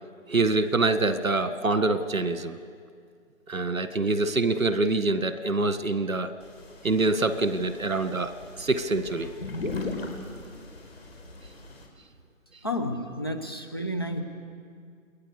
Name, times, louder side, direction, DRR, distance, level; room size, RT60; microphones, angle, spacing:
voice 1, 0.3-2.6 3.5-6.3 6.8-8.3 8.6-9.3, right 3 dB, 75° right, 10 dB, 1.9 m, -25 dB
sound 1, 6.4-11.9, left 3 dB, 45° left, 4.5 m, -38 dB
voice 2, 12.6-14.2, left 1 dB, 20° left, 4 dB, 1.0 m, -31 dB
29.0 x 21.0 x 6.8 m, 2.1 s
figure-of-eight pair, 175°, 41 cm